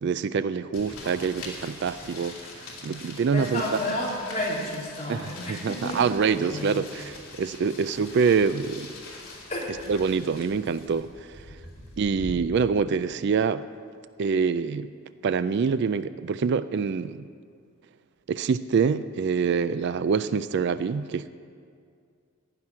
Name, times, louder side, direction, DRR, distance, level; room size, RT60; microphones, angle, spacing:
voice 1, 0.0-2.4 2.8-3.8 5.1-8.9 9.9-11.4 12.0-13.6 14.2-14.9 15.2-17.2 18.3-21.3, right 5 dB, 50° right, 14 dB, 0.3 m, -25 dB
sound 1, 0.7-12.4, left 2 dB, 70° left, 2.9 m, -43 dB
voice 2, 3.3-6.0 6.5-6.6 9.5-9.7, left 1 dB, 30° left, -6 dB, 3.4 m, -31 dB
15.0 x 5.9 x 9.8 m, 2.2 s
head